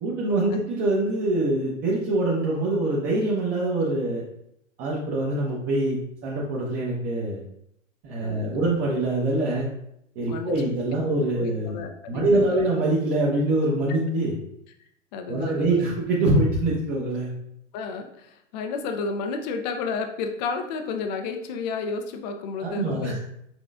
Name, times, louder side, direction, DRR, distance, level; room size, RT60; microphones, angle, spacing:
voice 1, 0.0-4.2 4.8-7.4 8.0-9.7 10.2-14.3 15.3-17.3 22.6-23.2, right 2 dB, 30° right, -5 dB, 0.9 m, -24 dB
voice 2, 8.2-8.7 10.3-10.6 11.4-12.6 15.1-15.8 17.7-23.2, left 4 dB, 35° left, 5 dB, 0.6 m, -32 dB
6.1 x 3.1 x 2.5 m, 0.77 s
figure-of-eight pair, 110°, 38 cm